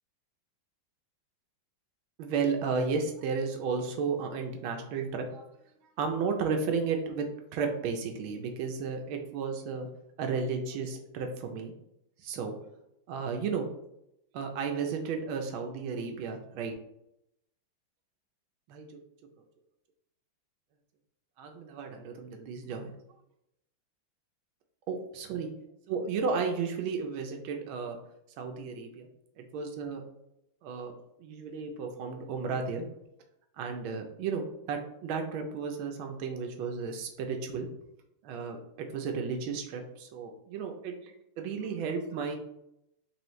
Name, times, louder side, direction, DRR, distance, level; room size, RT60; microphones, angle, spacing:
voice 1, 2.2-5.5 6.0-9.9 10.2-11.7 12.2-12.6 13.1-13.7 14.3-16.7 18.7-18.9 21.4-22.9 24.9-25.5 25.9-28.0 28.4-29.1 29.4-30.0 30.6-30.9 31.2-32.9 33.6-37.7 38.2-42.4, right 5 dB, 80° right, 4 dB, 1.4 m, -33 dB
4.7 x 2.7 x 3.1 m, 0.82 s
omnidirectional pair, 2.3 m